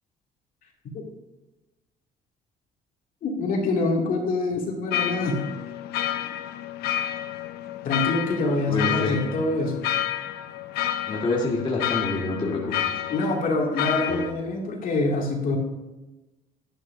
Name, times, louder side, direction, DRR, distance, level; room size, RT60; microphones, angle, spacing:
voice 1, 3.2-5.5 7.8-9.8 13.1-15.6, left 2 dB, 55° left, -1 dB, 2.6 m, -25 dB
sound 1, 4.9-14.3, left 11 dB, 70° left, 0.6 m, -30 dB
voice 2, 8.7-9.2 11.1-12.8 14.1-14.2, left 3 dB, 25° left, -3 dB, 1.8 m, -26 dB
11.0 x 11.0 x 2.7 m, 1.1 s
cardioid pair, 110°, 17 cm